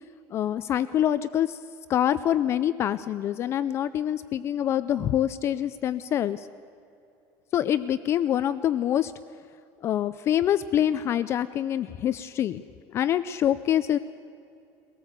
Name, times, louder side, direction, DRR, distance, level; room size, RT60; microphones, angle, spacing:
voice 1, 0.3-1.6 1.9-6.5 7.5-9.1 9.8-12.6 12.9-14.0, left 11 dB, 30° left, 14 dB, 0.4 m, -25 dB
23.0 x 18.0 x 8.1 m, 2.7 s
cardioid pair, 175°, 9 cm